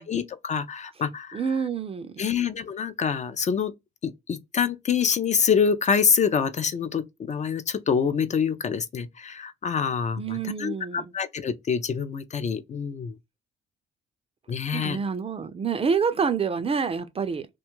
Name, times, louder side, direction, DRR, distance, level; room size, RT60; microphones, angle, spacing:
voice 1, 0.0-1.4 2.2-3.7 4.0-13.2 14.5-15.0, left 6 dB, 35° left, 0.4 m, -26 dB
voice 2, 1.3-2.3 10.2-11.1 14.7-17.5, right 6 dB, 30° right, 0.4 m, -27 dB
2.4 x 2.3 x 2.9 m
cardioid pair, 90°, 20 cm